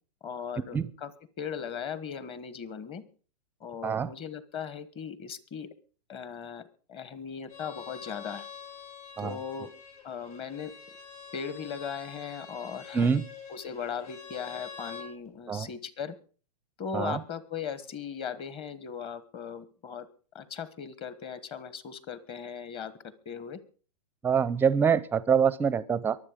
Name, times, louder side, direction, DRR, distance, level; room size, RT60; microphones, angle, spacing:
voice 1, 0.2-1.1 1.4-3.0 3.6-5.7 6.1-8.5 9.2-9.7 10.0-10.7 11.3-13.1 13.5-16.1 16.8-20.1 20.3-23.6, left 7 dB, 25° left, 15 dB, 1.3 m, -38 dB
Bowed string instrument, 7.5-15.1, left 6 dB, 60° left, 6.8 m, -46 dB
voice 2, 12.9-13.2 15.5-15.7 16.9-17.2 24.2-26.2, right 6 dB, 10° right, 18 dB, 0.6 m, -25 dB
23.0 x 7.8 x 5.0 m, 0.40 s
hypercardioid pair, 145°, 21 cm